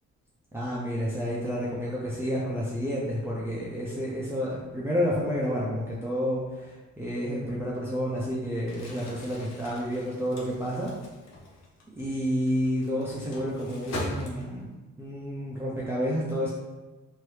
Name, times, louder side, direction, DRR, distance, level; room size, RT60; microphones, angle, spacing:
voice 1, 0.5-10.9 12.0-14.7 15.0-16.5, equal, 10° right, -7 dB, 0.6 m, -30 dB
Crumpling crinkling, 8.7-14.8, left 1 dB, 60° left, 0.9 m, -41 dB
3.0 x 2.7 x 3.2 m, 1.2 s
cardioid pair, 90°, 30 cm